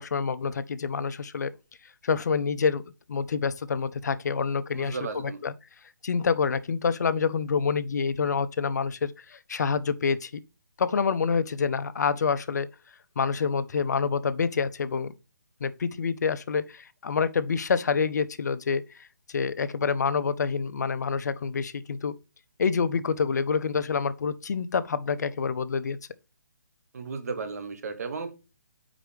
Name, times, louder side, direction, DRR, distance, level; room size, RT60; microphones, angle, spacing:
voice 1, 0.0-1.5 2.0-2.8 3.1-5.0 5.2-5.5 6.0-10.4 10.8-12.7 13.2-15.1 15.6-18.8 19.3-22.1 22.6-26.0, left 5 dB, 65° left, 0.6 m, -27 dB
voice 2, 4.7-5.4 26.9-28.3, right 4 dB, 55° right, 1.3 m, -34 dB
5.0 x 4.4 x 5.0 m
hypercardioid pair, 155°, 10 cm